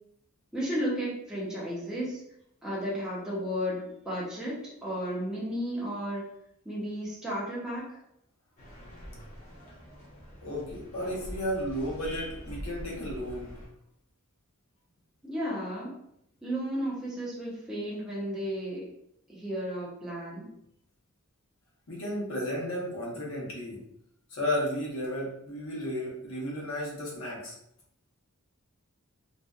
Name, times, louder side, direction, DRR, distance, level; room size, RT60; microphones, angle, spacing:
voice 1, 0.5-2.2 2.6-6.3 6.6-8.0 15.2-16.0 16.4-18.9 19.3-20.5, equal, 5° right, -7 dB, 0.6 m, -33 dB
sound 1, 8.6-13.7, equal, 35° left, 0.7 m, -43 dB
voice 2, 10.4-13.6 21.9-23.8 24.3-27.5, equal, 65° left, -4 dB, 0.8 m, -33 dB
2.6 x 2.1 x 2.3 m, 0.74 s
head